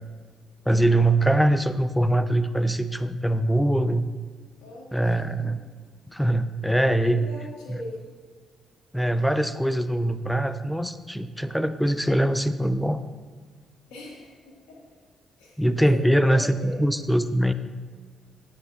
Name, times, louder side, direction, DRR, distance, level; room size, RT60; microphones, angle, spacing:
voice 1, 0.7-4.1 4.9-5.6 6.1-7.2 7.7-7.8 8.9-13.0 15.6-17.5, right 1 dB, 5° left, 12 dB, 0.5 m, -22 dB
voice 2, 4.6-5.5 7.0-8.0 13.9-14.3 14.7-14.8 15.4-15.6 15.9-16.8, left 1 dB, 85° left, -3 dB, 1.8 m, -39 dB
10.5 x 7.7 x 2.5 m, 1.5 s
hypercardioid pair, 50°, 0 cm